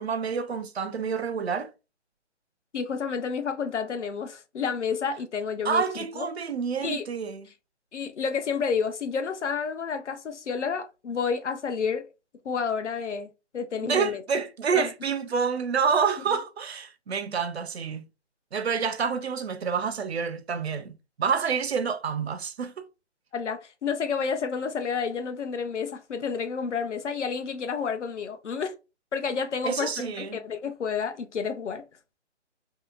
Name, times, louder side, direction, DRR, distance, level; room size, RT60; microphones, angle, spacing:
voice 1, 0.0-1.7 5.6-7.5 13.8-18.0 18.5-22.9 29.6-30.4, right 6 dB, 60° right, 0.5 m, -28 dB
voice 2, 2.7-5.8 6.2-6.3 6.8-7.0 7.9-12.1 12.4-14.2 14.7-14.9 23.3-28.7 29.1-31.8, left 6 dB, 75° left, 0.7 m, -30 dB
2.7 x 2.1 x 2.4 m
hypercardioid pair, 170°, 36 cm